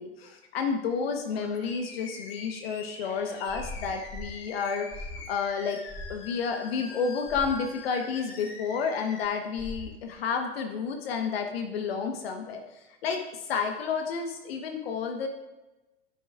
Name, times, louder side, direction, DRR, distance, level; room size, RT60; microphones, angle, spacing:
voice 1, 0.0-5.8 6.1-15.3, left 5 dB, 65° left, 5 dB, 1.2 m, -31 dB
Animal, 1.3-9.3, left 4 dB, 50° left, 3.1 m, -45 dB
sound 1, 3.5-4.3 4.9-5.3 5.9-6.2 7.3-7.6 9.6-10.0, left 1 dB, 10° right, 1.9 m, -40 dB
10.0 x 9.1 x 2.4 m, 1.1 s
hypercardioid pair, 90°, 32 cm